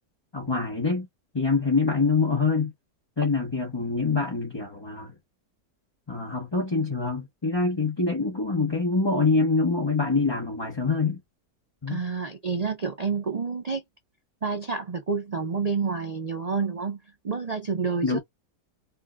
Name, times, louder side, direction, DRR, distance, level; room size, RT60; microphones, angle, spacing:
voice 1, 0.3-1.1 1.3-2.7 3.2-5.1 6.1-11.2 11.8-12.0 18.0-18.2, left 4 dB, 20° left, 0.7 m, -25 dB
voice 2, 11.9-13.8 14.4-18.2, right 5 dB, 80° right, 0.3 m, -29 dB
4.6 x 2.2 x 2.3 m
omnidirectional pair, 1.8 m